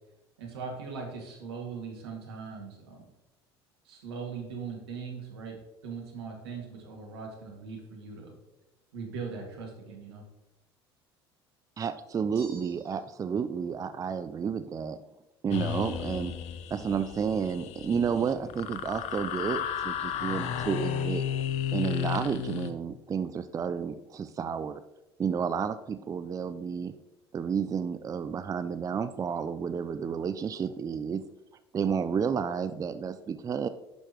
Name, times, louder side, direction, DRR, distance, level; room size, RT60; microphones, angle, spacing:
voice 1, 0.4-3.0 3.8-8.3 8.9-10.2, right 5 dB, 80° right, 0 dB, 2.2 m, -40 dB
voice 2, 11.8-15.0 15.4-16.3 16.7-21.2 21.7-24.8 25.2-26.9 27.3-31.2 31.7-33.7, right 6 dB, 25° right, 12 dB, 0.4 m, -31 dB
sound 1, 12.3-13.3, right 3 dB, 50° right, 2.8 m, -53 dB
sound 2, 15.5-22.7, left 9 dB, 55° left, 0.8 m, -33 dB
10.5 x 6.3 x 3.0 m, 0.99 s
hypercardioid pair, 65°, 13 cm